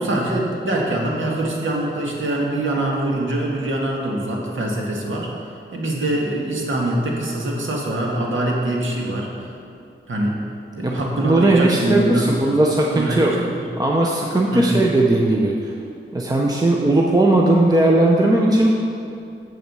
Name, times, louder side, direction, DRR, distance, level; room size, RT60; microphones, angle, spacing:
voice 1, 0.0-5.3 5.7-9.3 10.1-10.4 10.7-12.3 12.9-13.7 14.5-14.8, right 1 dB, 70° right, -2 dB, 1.7 m, -23 dB
voice 2, 10.8-13.4 13.8-15.7 16.1-18.8, right 2 dB, 20° right, -1 dB, 0.7 m, -17 dB
7.7 x 7.4 x 6.8 m, 2.5 s
wide cardioid pair, 150°, 21 cm